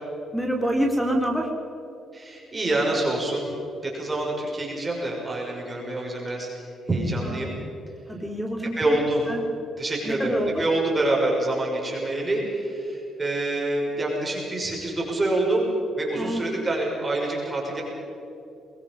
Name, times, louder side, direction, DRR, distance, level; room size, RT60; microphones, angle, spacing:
voice 1, 0.3-1.5 7.2-7.5 8.1-9.0 9.3-9.4 10.0-10.5 16.1-16.4, right 1 dB, ahead, 2 dB, 3.1 m, -26 dB
voice 2, 2.1-3.5 3.8-6.5 6.9-7.5 8.6-9.2 9.8-15.7 16.0-17.8, right 2 dB, 25° right, -2 dB, 6.1 m, -26 dB
24.5 x 21.5 x 5.5 m, 2.7 s
cardioid pair, 90°, 0 cm